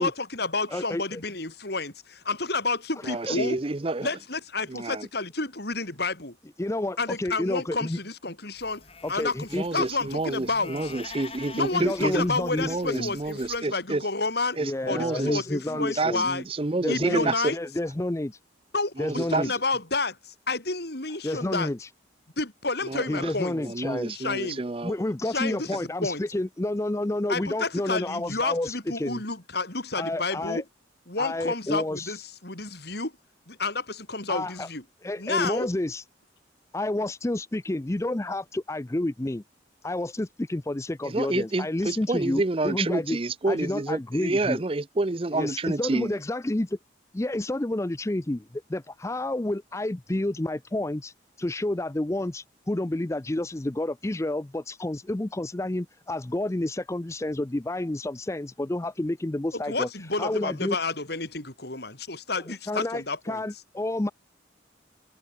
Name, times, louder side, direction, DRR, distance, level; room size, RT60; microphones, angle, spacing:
voice 1, 0.0-3.6 4.0-6.4 7.0-8.8 9.1-10.9 11.5-14.6 14.9-16.4 16.9-17.6 18.7-21.7 22.4-23.6 24.1-24.6 25.2-26.2 27.3-30.6 31.1-33.1 33.5-34.8 35.2-35.7 59.5-63.4, left 3 dB, 55° left, 4.1 m, -30 dB
voice 2, 0.7-1.2 3.3-3.4 6.6-8.0 9.0-9.9 11.7-13.1 14.6-16.3 16.8-18.4 19.0-19.5 21.2-21.9 23.1-24.1 24.8-29.2 30.0-30.6 31.2-32.2 34.3-34.7 35.0-36.0 36.7-39.4 39.8-43.2 43.5-44.6 45.3-46.8 47.1-59.9 60.2-60.8 62.7-64.1, left 1 dB, 15° left, 0.5 m, -30 dB
voice 3, 3.0-4.1 4.7-5.1 9.5-12.2 12.6-14.0 14.6-15.4 16.0-17.5 19.0-19.4 22.8-23.3 23.6-24.9 41.0-46.2, right 2 dB, 30° right, 0.6 m, -28 dB
sound 1, 8.6-13.6, left 4 dB, 30° left, 6.0 m, -46 dB
head